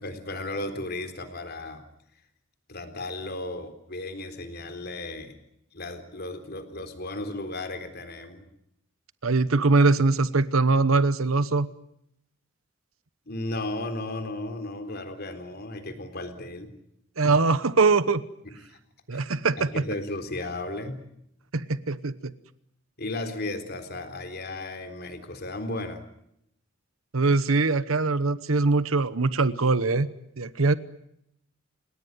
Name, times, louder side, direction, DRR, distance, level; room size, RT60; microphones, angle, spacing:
voice 1, 0.0-1.8 2.7-5.4 5.7-8.5 13.3-16.7 18.4-18.8 19.1-19.3 19.7-21.0 23.0-26.0, left 2 dB, 50° left, 8 dB, 3.9 m, -35 dB
voice 2, 9.2-11.7 17.2-18.2 19.1-19.8 21.5-22.3 27.1-30.1 30.4-30.7, right 3 dB, 90° right, 15 dB, 1.0 m, -22 dB
30.0 x 18.0 x 9.5 m, 0.78 s
head